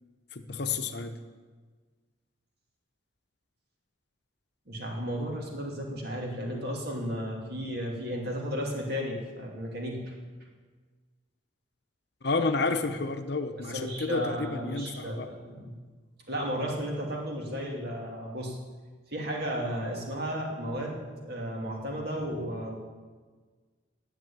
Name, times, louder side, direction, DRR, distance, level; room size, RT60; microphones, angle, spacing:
voice 1, 0.3-1.2 12.2-15.3, left 3 dB, 55° left, 8 dB, 0.8 m, -30 dB
voice 2, 4.7-10.1 13.6-15.8 16.3-18.6 19.1-22.8, equal, 50° right, -1 dB, 2.5 m, -34 dB
11.0 x 8.1 x 8.3 m, 1.5 s
head